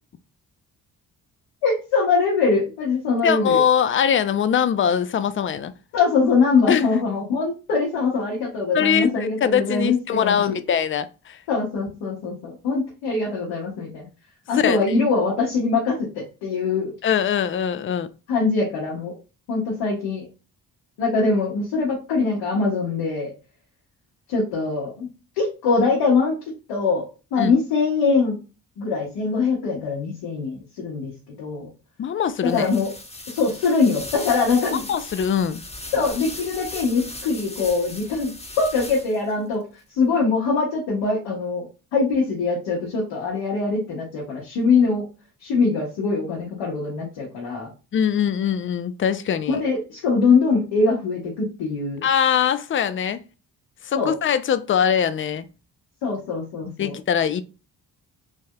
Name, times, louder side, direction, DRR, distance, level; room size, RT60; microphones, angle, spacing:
voice 1, 1.6-3.6 5.9-10.6 11.5-14.1 14.5-16.9 18.3-19.2 19.5-20.3 21.0-23.3 24.3-25.1 25.4-26.4 26.7-27.1 27.3-28.4 28.8-31.1 31.4-31.7 32.4-32.9 33.3-34.8 35.9-38.3 38.6-39.6 39.9-45.1 45.4-47.7 49.5-52.1 53.9-54.2 56.0-57.0, left 4 dB, 75° left, 1.1 m, -22 dB
voice 2, 3.2-5.7 6.7-6.8 8.7-11.4 14.5-14.8 17.0-18.1 27.4-27.5 32.0-32.7 34.9-35.6 47.9-49.6 52.0-53.2 53.8-55.5 56.8-57.4, left 8 dB, 30° left, 0.4 m, -22 dB
sound 1, 32.4-39.3, left 2 dB, 15° left, 0.9 m, -38 dB
3.3 x 2.6 x 2.2 m
hypercardioid pair, 40°, 44 cm